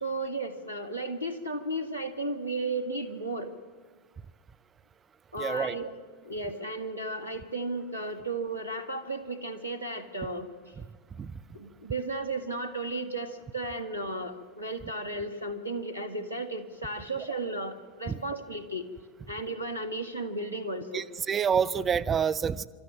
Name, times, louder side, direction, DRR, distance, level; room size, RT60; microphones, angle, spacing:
voice 1, 0.0-3.5 5.3-5.9 6.2-10.7 11.5-18.9 19.3-21.0, right 2 dB, 85° right, 7 dB, 2.0 m, -34 dB
voice 2, 5.4-5.8 11.2-11.3 18.1-18.2 20.9-22.7, right 7 dB, 20° right, 12 dB, 0.7 m, -27 dB
27.0 x 13.0 x 9.0 m, 1.5 s
figure-of-eight pair, 90°, 0 cm